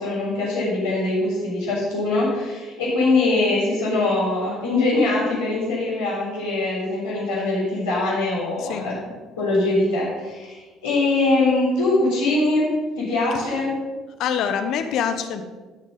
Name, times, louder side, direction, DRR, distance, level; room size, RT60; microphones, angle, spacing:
voice 1, 0.0-8.9 9.4-12.7 13.0-13.8, left 2 dB, 90° left, -12 dB, 3.9 m, -22 dB
voice 2, 14.2-15.4, left 8 dB, 65° left, 8 dB, 1.1 m, -25 dB
14.5 x 6.3 x 5.5 m, 1.3 s
hypercardioid pair, 55°, 0 cm